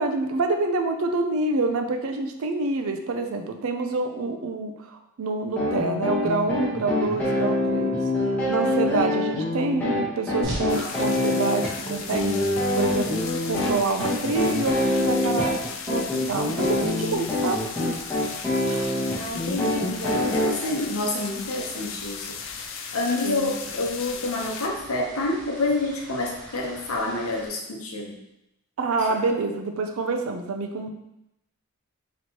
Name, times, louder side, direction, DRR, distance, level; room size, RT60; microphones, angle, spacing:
voice 1, 0.0-8.0 8.5-12.4 12.7-15.5 15.9-17.6 18.6-18.9 19.6-20.4 23.2-23.5 28.8-30.9, right 3 dB, 75° right, 5 dB, 0.5 m, -27 dB
sound 1, 5.6-20.5, left 1 dB, 5° left, 1.0 m, -25 dB
sound 2, 10.4-27.5, right 1 dB, 55° right, 1.0 m, -42 dB
sound 3, 10.7-24.7, left 7 dB, 60° left, 0.3 m, -37 dB
voice 2, 19.1-22.3 22.9-28.2, left 2 dB, 80° left, 0 dB, 0.8 m, -28 dB
4.3 x 3.1 x 2.8 m, 0.86 s
head